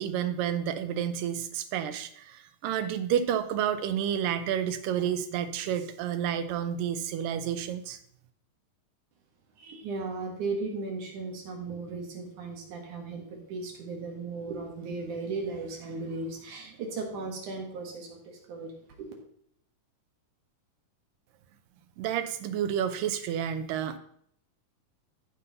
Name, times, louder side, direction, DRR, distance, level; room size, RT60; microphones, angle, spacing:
voice 1, 0.0-8.0 22.0-24.0, right 9 dB, 90° right, 9 dB, 2.4 m, -30 dB
voice 2, 9.6-18.7 19.0-19.1, right 3 dB, 70° right, 1 dB, 3.0 m, -36 dB
15.0 x 5.5 x 4.0 m, 0.66 s
omnidirectional pair, 3.8 m